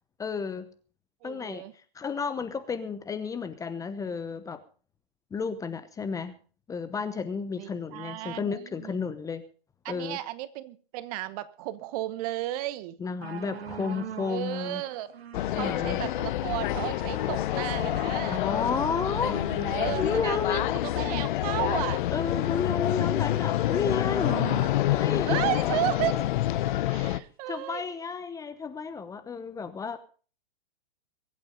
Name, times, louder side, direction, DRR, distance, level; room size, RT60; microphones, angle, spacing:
voice 1, 0.2-0.7 1.2-1.6 1.9-4.6 5.3-6.3 6.7-9.4 9.9-10.2 13.0-14.8 15.5-16.0 18.3-20.8 22.1-24.4 24.9-25.4 27.5-30.0, left 5 dB, 10° left, 0.9 m, -32 dB
voice 2, 1.2-1.7 7.6-8.9 9.8-13.0 14.3-15.1 15.4-18.4 19.7-22.0 25.3-26.3 26.9-27.8, right 15 dB, 40° right, 1.1 m, -34 dB
sound 1, 13.2-26.8 27.5-27.6, right 7 dB, 80° right, 1.6 m, -42 dB
sound 2, 15.3-27.2, left 14 dB, 55° left, 0.9 m, -27 dB
22.5 x 8.6 x 5.3 m
hypercardioid pair, 135°, 31 cm